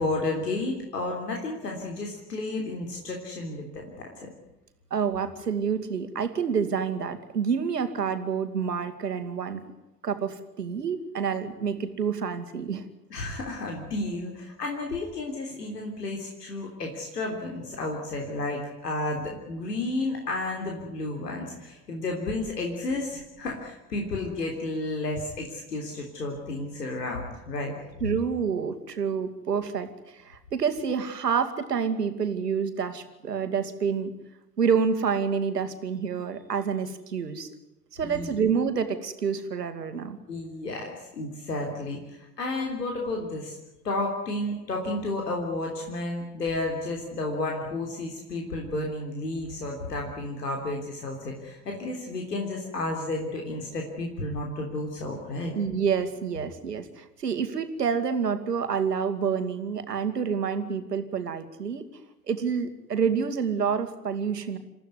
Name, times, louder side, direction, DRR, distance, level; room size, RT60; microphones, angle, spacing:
voice 1, 0.0-3.9 4.2-4.3 13.1-27.7 38.0-38.4 40.3-43.6 43.8-55.5, left 2 dB, 80° left, 1 dB, 3.5 m, -32 dB
voice 2, 4.9-9.6 10.0-12.8 28.0-34.1 34.6-37.5 37.9-40.2 55.6-61.9 62.3-64.6, right 6 dB, 80° right, 9 dB, 2.3 m, -28 dB
28.0 x 15.0 x 9.6 m, 0.97 s
figure-of-eight pair, 75°, 47 cm